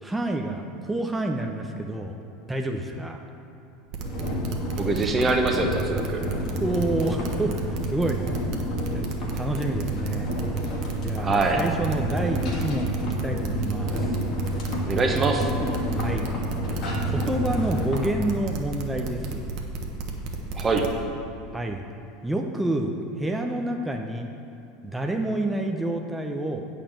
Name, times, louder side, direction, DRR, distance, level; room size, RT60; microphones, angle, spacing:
voice 1, 0.0-2.1 2.5-3.2 6.6-8.2 8.9-10.3 11.0-14.1 16.0-16.3 17.0-19.6 21.5-21.8 22.2-24.3 24.8-26.6, right 1 dB, 5° right, 2 dB, 0.7 m, -28 dB
sound 1, 3.9-20.9, right 4 dB, 55° right, 1.2 m, -33 dB
sound 2, 4.0-18.1, equal, 50° left, 2.0 m, -30 dB
voice 2, 4.8-6.2 11.2-11.6 14.8-15.5 20.5-20.9, right 3 dB, 25° right, 3 dB, 1.3 m, -23 dB
8.8 x 5.0 x 7.2 m, 2.7 s
hypercardioid pair, 80°, 0 cm